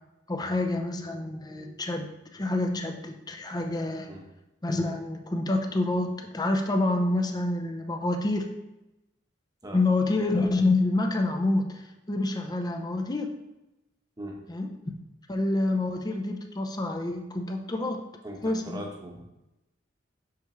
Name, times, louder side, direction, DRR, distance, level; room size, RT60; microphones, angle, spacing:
voice 1, 0.3-4.1 4.6-8.5 9.7-13.3 14.5-14.7 15.3-18.0 18.4-18.8, left 2 dB, 20° left, 4 dB, 0.6 m, -27 dB
voice 2, 18.2-19.2, equal, 20° right, 0 dB, 1.0 m, -39 dB
6.0 x 5.7 x 3.1 m, 0.95 s
head